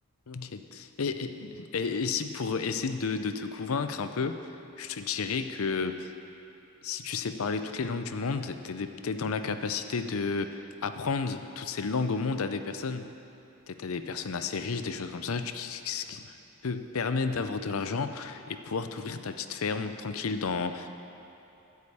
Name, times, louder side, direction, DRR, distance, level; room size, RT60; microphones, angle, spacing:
voice 1, 0.3-6.1 6.8-13.1 13.7-16.4 16.6-20.9, left 4 dB, 75° left, 9 dB, 0.6 m, -32 dB
12.5 x 5.0 x 8.6 m, 2.8 s
head